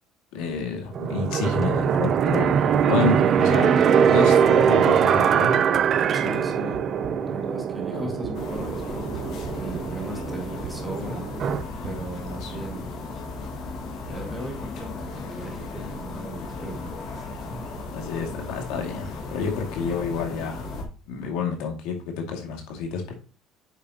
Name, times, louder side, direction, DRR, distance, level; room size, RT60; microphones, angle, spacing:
voice 1, 0.3-5.5 7.9-8.1 12.3-12.5 17.9-20.7 21.1-23.1, left 5 dB, 75° left, 3 dB, 2.0 m, -29 dB
sound 1, 0.9-11.6, right 8 dB, 35° right, 0.4 m, -22 dB
voice 2, 6.1-6.8 7.3-13.0 13.5-13.6 14.0-17.3, right 1 dB, 10° right, 1 dB, 1.9 m, -38 dB
sound 2, 6.4-12.9, right 4 dB, 80° right, 1.5 m, -42 dB
sound 3, 8.3-20.8, left 3 dB, 50° left, 1.8 m, -36 dB
8.2 x 6.4 x 2.8 m, 0.35 s
cardioid pair, 165°, 0 cm